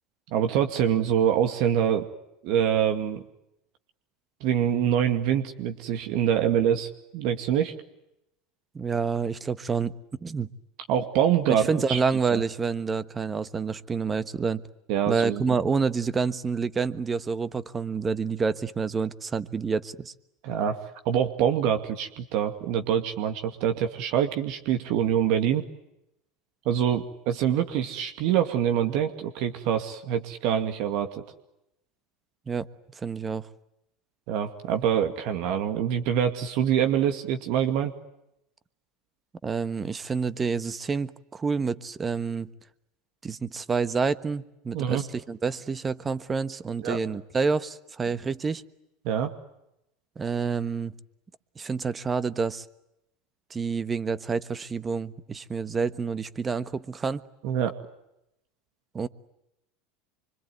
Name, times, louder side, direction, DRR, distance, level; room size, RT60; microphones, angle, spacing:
voice 1, 0.3-2.1 2.4-3.2 4.4-7.7 10.9-12.0 12.3-12.4 14.9-15.6 20.4-20.8 21.0-25.7 26.7-31.2 34.3-37.9 44.7-45.0 46.8-47.0 49.0-49.3 57.4-57.7, right 9 dB, 60° right, 7 dB, 2.3 m, -25 dB
voice 2, 8.7-9.9 10.2-10.5 11.7-14.6 15.1-20.1 32.5-32.7 33.0-33.5 39.4-42.5 43.2-48.6 50.2-50.9 51.6-52.6 53.5-57.2 58.9-59.1, right 5 dB, 20° right, 15 dB, 1.3 m, -28 dB
25.5 x 24.5 x 9.3 m, 0.85 s
supercardioid pair, 120°, 0 cm